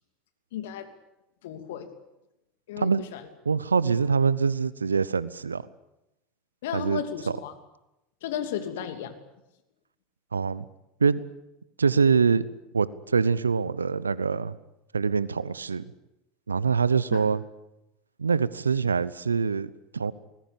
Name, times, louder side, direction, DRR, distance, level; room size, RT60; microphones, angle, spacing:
voice 1, 0.5-0.9 1.4-1.9 2.7-3.2 6.6-7.5 8.2-9.1 17.1-17.2, left 9 dB, 70° left, 8 dB, 2.9 m, -34 dB
voice 2, 3.4-5.6 6.7-7.0 10.3-10.6 11.0-11.2 11.8-12.4 12.7-14.6 14.9-15.9 16.5-17.4 18.2-20.1, right 5 dB, 90° right, 19 dB, 0.9 m, -24 dB
24.5 x 20.0 x 8.7 m, 0.90 s
hypercardioid pair, 80°, 0 cm